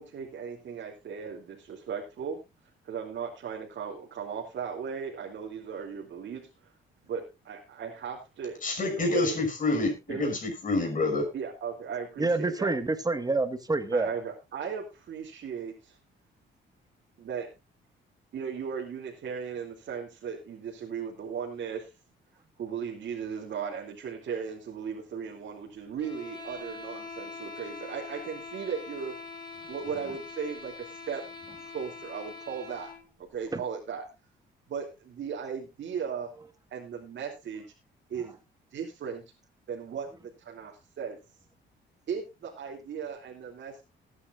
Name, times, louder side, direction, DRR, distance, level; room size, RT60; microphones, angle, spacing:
voice 1, 0.0-2.4 2.8-6.7 7.0-9.4 10.1-10.3 11.3-12.7 13.9-16.0 17.2-17.5 18.3-21.9 22.6-29.2 29.7-30.7 31.1-31.2 31.6-32.9 33.3-34.1 34.7-36.3 36.7-37.6 38.1-38.4 38.7-39.2 39.7-41.2 42.1-43.8, right 6 dB, 65° right, 3.0 m, -37 dB
voice 2, 8.6-11.3, left 3 dB, 40° left, 6.0 m, -27 dB
voice 3, 12.2-14.1 33.5-33.6, right 3 dB, 20° right, 1.7 m, -27 dB
sound 1, 26.0-33.1, left 3 dB, 20° left, 4.4 m, -43 dB
19.5 x 9.9 x 2.6 m
cardioid pair, 90°, 20 cm